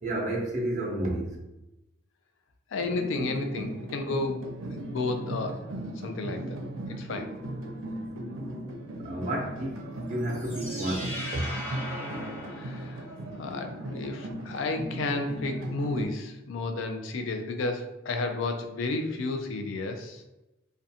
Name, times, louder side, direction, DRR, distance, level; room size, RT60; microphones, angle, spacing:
voice 1, 0.0-1.4 9.0-11.4, right 1 dB, 35° right, 0 dB, 0.5 m, -31 dB
voice 2, 2.7-4.4 4.9-5.5 6.0-6.6 7.0-7.3 12.6-13.1 13.4-20.2, left 3 dB, 80° left, 6 dB, 0.4 m, -32 dB
sound 1, 2.8-16.1, right 1 dB, 90° right, 0.4 m, -37 dB
sound 2, 10.2-13.3, left 1 dB, 10° left, 0.5 m, -38 dB
2.4 x 2.2 x 2.7 m, 0.96 s
head